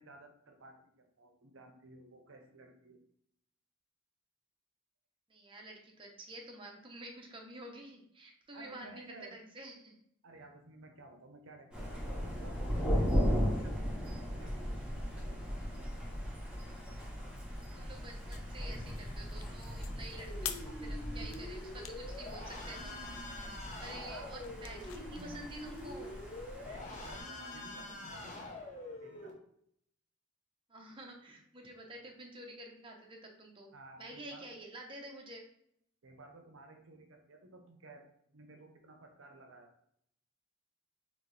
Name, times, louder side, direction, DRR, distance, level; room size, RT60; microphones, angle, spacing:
voice 1, 0.0-3.0 8.5-9.4 10.2-14.6 15.1-16.0 20.6-20.8 24.1-24.8 25.2-25.4 26.6-28.7 29.0-29.4 33.7-34.4 36.0-39.7, right 2 dB, 70° right, 4 dB, 0.7 m, -55 dB
voice 2, 5.3-10.0 17.7-20.6 20.9-23.0 23.3-26.2 30.7-33.7 34.0-35.4, right 1 dB, 25° right, 0 dB, 0.7 m, -49 dB
Thunder, 11.7-27.2, equal, 5° right, 1.3 m, -37 dB
sound 1, 17.8-26.6, left 10 dB, 70° left, 0.4 m, -50 dB
sound 2, 20.1-29.3, left 1 dB, 35° left, 0.8 m, -45 dB
4.2 x 3.1 x 3.2 m, 0.71 s
head